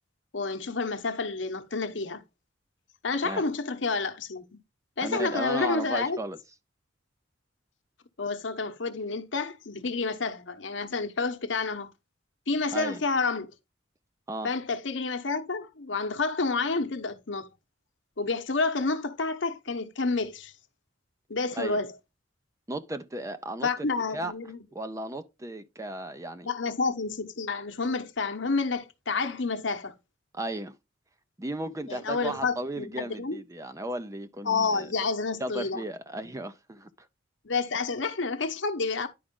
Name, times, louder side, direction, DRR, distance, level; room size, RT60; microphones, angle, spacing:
voice 1, 0.3-2.2 3.0-4.6 5.0-6.2 8.2-11.9 12.5-13.5 14.4-17.5 18.2-20.5 21.3-21.9 23.6-24.6 26.4-30.0 31.9-33.4 34.4-35.8 37.4-39.1, left 4 dB, 70° left, 1.0 m, -29 dB
voice 2, 5.0-6.4 12.7-13.0 14.3-14.5 21.5-21.8 22.7-23.9 24.1-24.3 24.7-26.5 30.3-30.7 31.4-34.9 35.4-36.9, right 1 dB, 15° right, 0.5 m, -35 dB
10.0 x 5.0 x 3.7 m
head